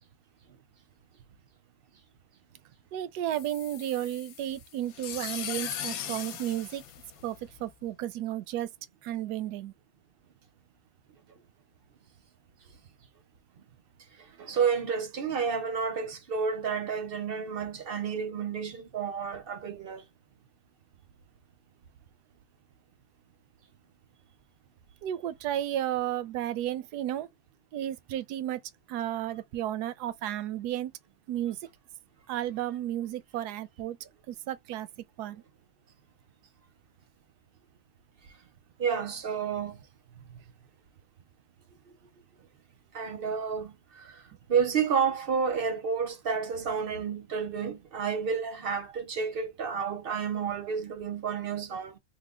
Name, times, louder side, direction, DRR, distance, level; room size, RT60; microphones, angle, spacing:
voice 1, 2.9-6.8 7.2-8.7 9.0-9.7 25.0-27.3 27.7-28.6 28.9-30.9 31.3-31.6 32.3-34.0 34.3-34.9 35.2-35.4, right 12 dB, 80° right, 1.1 m, -33 dB
sound 1, 3.3-7.7, left 9 dB, 70° left, 1.0 m, -39 dB
voice 2, 14.2-20.1 38.8-39.8 40.3-40.4 42.9-44.2 44.5-52.0, right 6 dB, 55° right, 0.7 m, -30 dB
3.3 x 2.0 x 3.6 m
omnidirectional pair, 1.7 m